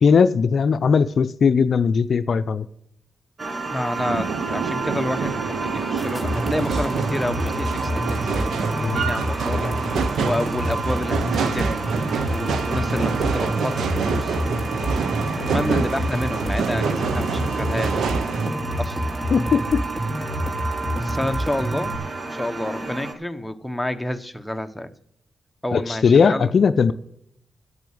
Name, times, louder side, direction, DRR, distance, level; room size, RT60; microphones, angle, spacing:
voice 1, 0.0-2.7 8.8-9.1 19.3-19.8 25.7-26.9, left 6 dB, 65° left, 12 dB, 0.5 m, -18 dB
sound 1, 3.4-23.1, right 3 dB, 40° right, 1.7 m, -31 dB
voice 2, 3.7-11.8 12.3-14.4 15.1-18.3 18.8-19.2 21.0-21.9 22.3-24.9 25.6-26.5, left 1 dB, 5° left, 7 dB, 1.1 m, -29 dB
sound 2, 3.9-18.5, right 6 dB, 80° right, 0.8 m, -27 dB
sound 3, 6.0-22.0, equal, 20° right, 2.4 m, -28 dB
9.1 x 8.6 x 7.1 m, 0.74 s
supercardioid pair, 45°, 0 cm